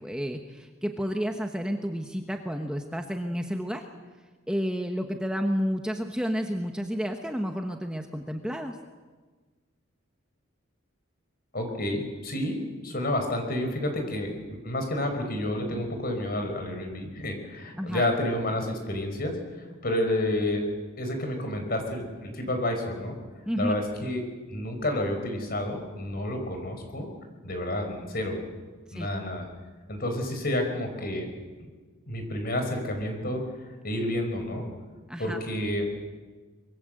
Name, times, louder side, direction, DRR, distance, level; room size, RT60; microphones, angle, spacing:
voice 1, 0.0-3.9 4.5-8.8 17.8-18.0 23.5-23.7 28.9-29.1 35.1-35.4, equal, 5° right, 4 dB, 1.2 m, -31 dB
voice 2, 11.5-12.6 12.8-19.3 19.8-20.7 21.0-23.2 23.6-27.1 27.4-28.4 28.9-29.5 29.9-31.3 31.6-31.7 32.1-33.4 33.8-34.7 35.2-35.9, left 1 dB, 45° left, 5 dB, 5.1 m, -30 dB
25.0 x 22.5 x 7.9 m, 1.4 s
head